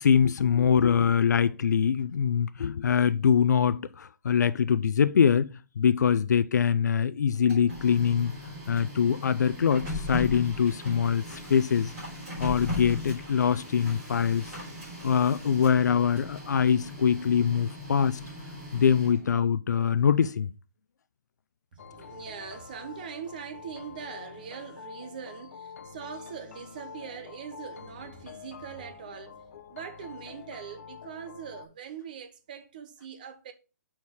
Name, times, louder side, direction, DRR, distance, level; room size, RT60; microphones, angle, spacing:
voice 1, 0.0-5.5 5.8-8.3 8.7-11.2 11.5-11.9 12.4-14.4 15.0-18.2 18.7-20.5, left 7 dB, 70° left, 0.4 m, -23 dB
Printer, 7.3-19.4, left 2 dB, 15° right, 3.3 m, -39 dB
voice 2, 21.7-29.4 29.7-33.5, right 7 dB, 30° right, 0.6 m, -42 dB
sound 1, 21.8-31.7, left 7 dB, 50° left, 0.8 m, -46 dB
6.3 x 4.4 x 3.5 m
hypercardioid pair, 175°, 10 cm